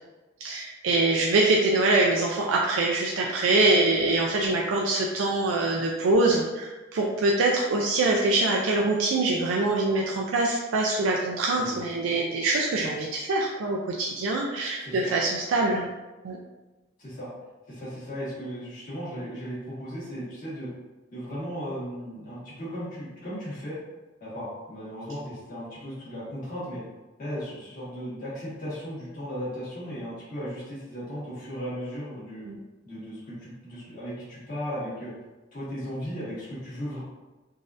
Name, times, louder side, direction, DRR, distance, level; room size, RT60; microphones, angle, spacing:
voice 1, 0.4-15.9 16.2-16.4 32.5-32.6, right 2 dB, 85° right, -1 dB, 0.4 m, -24 dB
voice 2, 14.8-15.1 17.0-17.3 17.7-20.7 21.1-23.8 24.2-26.8 27.2-32.5 32.8-35.1 35.5-37.0, equal, 45° left, -10 dB, 1.4 m, -36 dB
3.9 x 2.5 x 2.4 m, 1.2 s
head